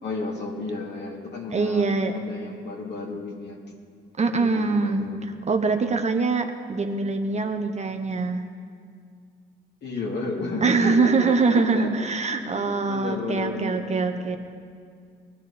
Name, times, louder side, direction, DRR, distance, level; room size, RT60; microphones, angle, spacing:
voice 1, 0.0-1.9 2.1-3.6 4.3-5.2 9.8-11.9 12.5-14.0, left 3 dB, 60° left, -1 dB, 2.8 m, -32 dB
voice 2, 1.5-2.2 4.2-5.1 5.5-8.4 10.6-14.4, right 4 dB, 35° right, 6 dB, 1.0 m, -23 dB
21.0 x 12.5 x 4.3 m, 2.2 s
cardioid pair, 90°, 20 cm